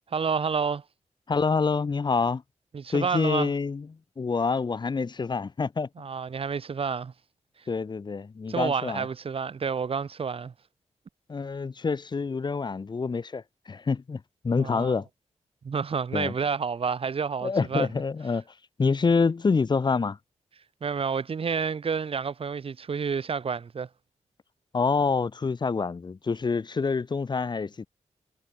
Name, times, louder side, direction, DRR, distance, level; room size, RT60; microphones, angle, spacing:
voice 1, 0.1-0.8 2.7-3.5 6.0-7.1 8.5-10.5 14.6-15.0 15.6-17.9 20.8-23.9, right 6 dB, 50° right, 6.8 m, -29 dB
voice 2, 1.3-2.4 2.9-3.9 4.2-5.9 7.7-9.1 11.3-15.1 16.1-16.3 17.4-18.4 18.8-20.2 24.7-27.9, left 4 dB, 35° left, 3.0 m, -26 dB
wide cardioid pair, 155°, 12 cm